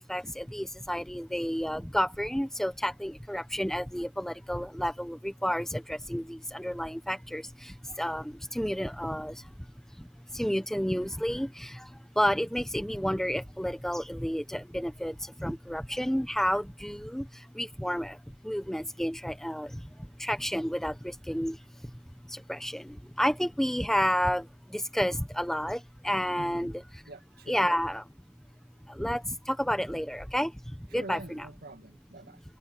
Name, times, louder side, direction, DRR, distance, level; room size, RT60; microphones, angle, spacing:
voice 1, 0.0-9.5 10.0-27.0 27.5-28.1 28.9-31.5, equal, ahead, 1.2 m, -31 dB
voice 2, 26.4-26.8 27.1-27.7 30.9-32.4, right 1 dB, 55° right, 2.2 m, -45 dB
open air
head